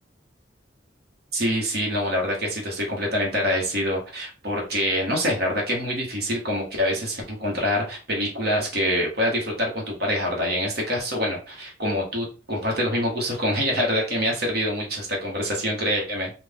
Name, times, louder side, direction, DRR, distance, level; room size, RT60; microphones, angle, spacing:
voice 1, 1.3-16.3, equal, 60° right, -1 dB, 1.4 m, -25 dB
4.1 x 2.5 x 3.6 m, 0.34 s
head